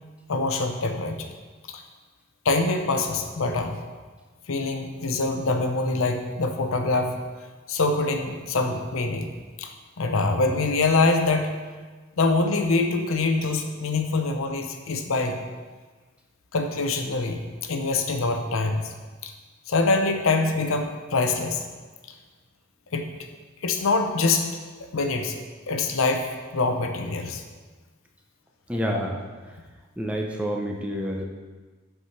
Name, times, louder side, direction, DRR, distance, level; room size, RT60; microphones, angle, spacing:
voice 1, 0.3-1.3 1.7-1.8 2.4-3.8 4.5-7.2 7.7-9.3 9.6-9.7 10.0-11.5 12.2-15.4 16.5-18.9 19.2-19.3 19.7-21.6 22.9-23.1 23.6-24.5 24.9-25.4 25.7-27.4, left 3 dB, 70° left, 5 dB, 0.7 m, -24 dB
voice 2, 28.7-29.2 30.0-31.2, equal, 5° right, 0 dB, 0.6 m, -28 dB
6.4 x 4.7 x 5.7 m, 1.4 s
head